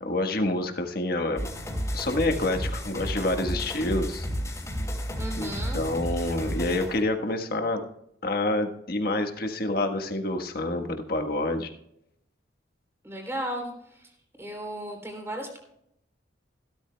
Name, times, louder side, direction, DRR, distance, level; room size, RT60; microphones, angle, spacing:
voice 1, 0.0-1.5 1.9-4.3 5.4-7.9 8.2-11.7, left 2 dB, 55° left, 5 dB, 1.4 m, -28 dB
sound 1, 1.4-7.0, equal, 15° left, 3.1 m, -32 dB
voice 2, 5.2-5.8 13.0-14.1 14.4-15.6, right 1 dB, 15° right, 1 dB, 3.4 m, -35 dB
16.5 x 13.0 x 2.3 m, 0.75 s
head